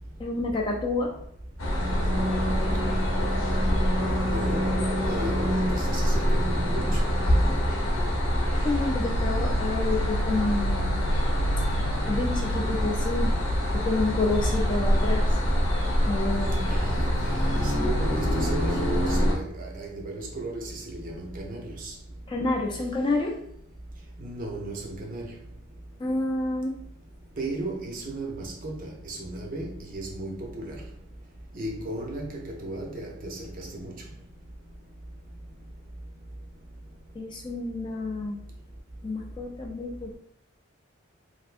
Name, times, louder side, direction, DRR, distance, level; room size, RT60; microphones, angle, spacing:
voice 1, 0.2-1.1 8.6-11.0 12.1-13.4 13.7-15.2 16.1-16.7 22.3-23.4 26.0-26.8 37.1-38.4 39.0-40.2, left 2 dB, 25° left, 0 dB, 0.3 m, -29 dB
sound 1, 1.6-19.3, equal, 80° left, 0.7 m, -25 dB
voice 2, 4.0-4.7 5.1-7.0 16.7-21.9 24.2-25.3 27.4-30.8 31.5-33.9, right 1 dB, 40° right, 0 dB, 0.6 m, -35 dB
3.2 x 2.6 x 2.5 m, 0.70 s
head